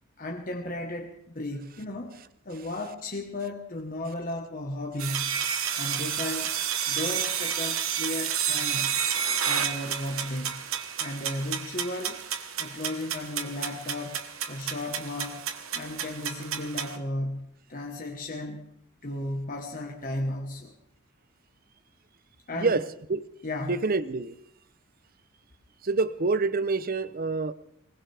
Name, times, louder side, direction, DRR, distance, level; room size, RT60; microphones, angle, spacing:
voice 1, 0.2-5.4 5.8-6.6 6.9-9.0 9.4-10.6 11.0-12.2 12.6-14.2 14.5-15.4 15.7-18.7 19.0-20.7 22.5-22.8 23.4-23.8, left 1 dB, 40° left, 1.3 m, -35 dB
sound 1, 5.0-17.0, right 8 dB, 75° right, 1.3 m, -31 dB
voice 2, 23.6-24.3 25.8-27.5, right 3 dB, 45° right, 0.7 m, -26 dB
20.5 x 20.0 x 3.5 m
head